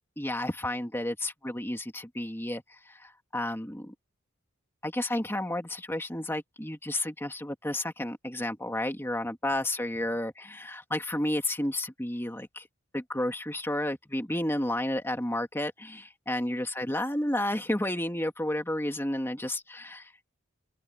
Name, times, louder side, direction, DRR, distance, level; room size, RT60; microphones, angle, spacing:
voice 1, 0.2-3.9 4.8-12.7 12.9-20.3, left 1 dB, 10° left, 2.4 m, -31 dB
open air
head